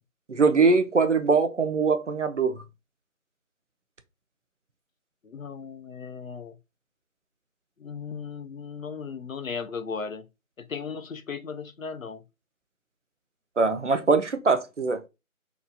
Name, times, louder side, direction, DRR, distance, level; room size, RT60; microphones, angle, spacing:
voice 1, 0.3-2.5 13.6-15.0, right 4 dB, 55° right, 0.6 m, -22 dB
voice 2, 5.2-6.5 7.8-10.2 10.6-12.2, left 5 dB, 65° left, 0.6 m, -36 dB
2.8 x 2.2 x 4.0 m
figure-of-eight pair, 165°, 43 cm